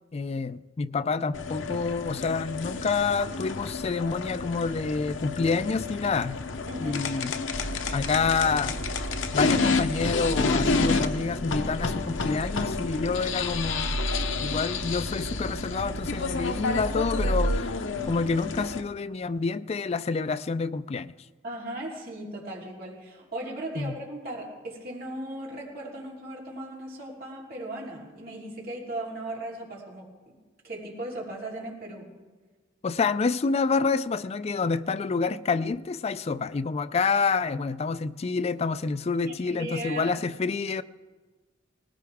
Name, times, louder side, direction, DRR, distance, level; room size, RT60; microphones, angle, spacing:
voice 1, 0.1-6.4 6.8-7.4 7.9-8.8 9.3-14.0 14.4-21.1 23.8-24.0 32.8-40.8, left 4 dB, 35° left, 0.4 m, -28 dB
sound 1, 1.3-18.8, left 4 dB, 80° left, 0.8 m, -30 dB
voice 2, 6.7-7.0 21.4-30.4 30.6-32.1 39.2-40.2, right 1 dB, 55° right, 3.5 m, -37 dB
sound 2, 7.5-17.6, right 2 dB, 35° right, 0.5 m, -34 dB
19.0 x 18.0 x 3.5 m
head